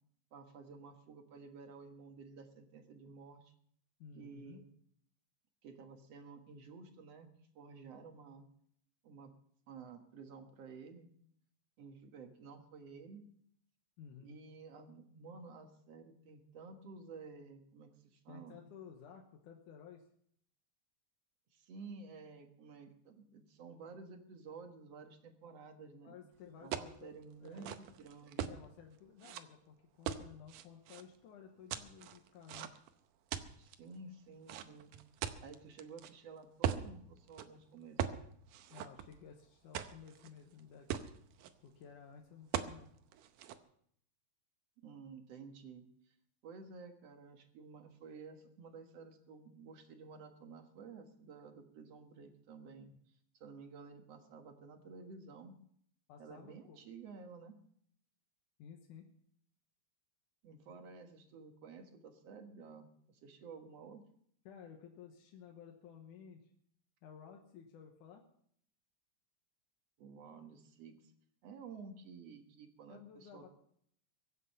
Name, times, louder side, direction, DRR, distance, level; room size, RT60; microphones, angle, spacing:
voice 1, 0.3-3.5 4.1-4.7 5.6-7.3 7.6-8.5 9.0-9.3 9.7-11.1 11.8-13.3 14.2-18.6 21.5-26.2 26.6-28.6 33.6-34.9 35.4-38.1 44.8-46.1 46.4-52.9 53.3-55.6 56.2-57.6 60.4-64.0 70.0-71.1 71.4-73.5, right 4 dB, 55° right, 5 dB, 2.4 m, -52 dB
voice 2, 4.0-4.6 14.0-14.4 18.3-20.0 26.0-27.1 27.4-27.7 28.3-32.7 38.7-40.9 41.6-42.9 56.1-56.8 58.6-59.1 64.5-66.5 67.0-68.2 72.9-73.5, left 7 dB, 80° left, 2 dB, 2.7 m, -55 dB
sound 1, 26.7-27.0 27.5-28.6 29.2-29.4 30.1-31.0 31.7-32.9 33.3-33.7 34.5-36.1 36.6-36.9 37.3-37.5 38.0-38.2 38.5-39.3 39.7-40.3 40.6-40.7 40.9-41.5 42.5-42.8 43.1-43.6, right 10 dB, 85° right, 2.4 m, -39 dB
23.0 x 8.3 x 5.5 m, 0.65 s
omnidirectional pair, 3.6 m